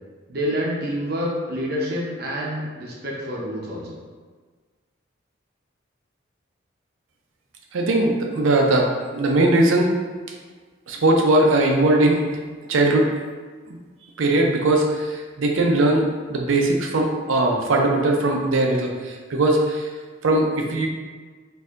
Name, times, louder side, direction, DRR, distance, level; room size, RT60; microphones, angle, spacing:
voice 1, 0.3-4.0, equal, 50° right, -3 dB, 0.7 m, -27 dB
voice 2, 7.7-8.9 9.1-9.9 10.9-12.2 12.7-13.1 14.2-16.0 16.3-19.8 20.2-20.9, right 2 dB, 85° right, 1 dB, 0.5 m, -19 dB
4.3 x 2.7 x 2.5 m, 1.5 s
head